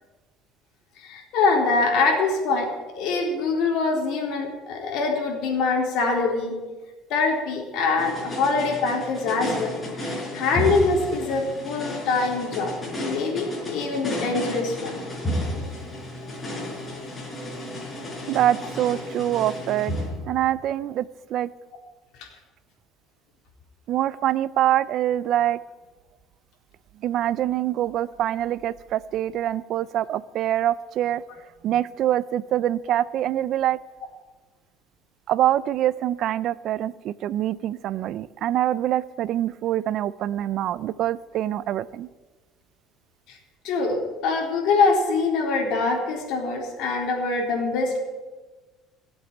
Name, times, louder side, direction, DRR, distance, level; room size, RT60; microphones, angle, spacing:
voice 1, 1.0-2.7 2.9-6.5 7.1-12.7 13.0-14.9 43.3-43.4 43.6-48.0, left 4 dB, 65° left, 0 dB, 3.9 m, -24 dB
sound 1, 8.0-20.7, left 1 dB, 20° left, 5.1 m, -32 dB
voice 2, 18.3-19.9 20.3-21.5 23.9-25.6 27.0-31.2 31.6-33.8 35.3-42.1, right 12 dB, 50° right, 19 dB, 0.4 m, -25 dB
17.0 x 8.1 x 9.2 m, 1.3 s
cardioid pair, 145°, 0 cm